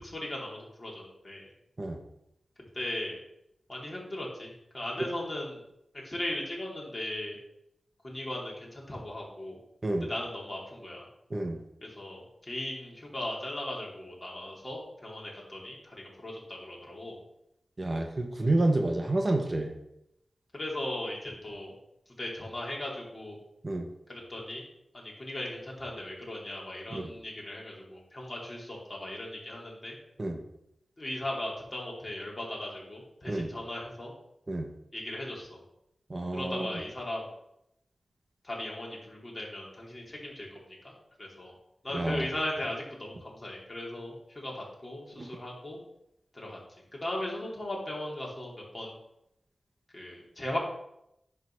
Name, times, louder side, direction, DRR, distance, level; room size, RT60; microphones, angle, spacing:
voice 1, 0.0-1.5 2.7-3.2 3.7-5.6 6.0-7.4 8.0-9.6 10.1-11.1 11.8-17.2 20.5-21.7 22.2-23.4 24.1-24.6 24.9-30.0 31.0-34.1 34.9-35.6 36.3-37.3 38.4-40.6 40.8-40.9 41.2-41.5 41.8-45.8 46.3-46.6 46.9-48.9 49.9-50.6, left 1 dB, 30° left, -3 dB, 3.2 m, -38 dB
voice 2, 17.8-19.7 23.6-23.9 26.9-27.1 30.2-30.4 33.3-33.5 34.5-34.7 36.1-36.7 41.9-42.3 45.2-45.3, right 2 dB, 40° right, 3 dB, 1.2 m, -29 dB
10.0 x 3.9 x 6.3 m, 0.80 s
wide cardioid pair, 80°, 0 cm